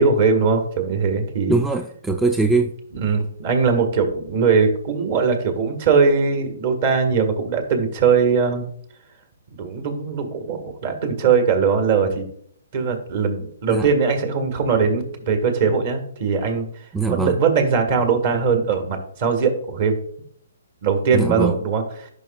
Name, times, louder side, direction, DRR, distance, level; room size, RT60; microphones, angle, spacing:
voice 1, 0.0-1.6 2.9-8.6 9.5-12.3 12.7-16.7 17.1-20.0 20.8-22.1, right 5 dB, 50° right, 6 dB, 1.7 m, -20 dB
voice 2, 1.5-2.7 13.7-13.9 16.9-17.4 21.1-21.6, right 3 dB, 5° right, 6 dB, 0.4 m, -21 dB
10.5 x 5.4 x 2.4 m, 0.65 s
hypercardioid pair, 140°, 0 cm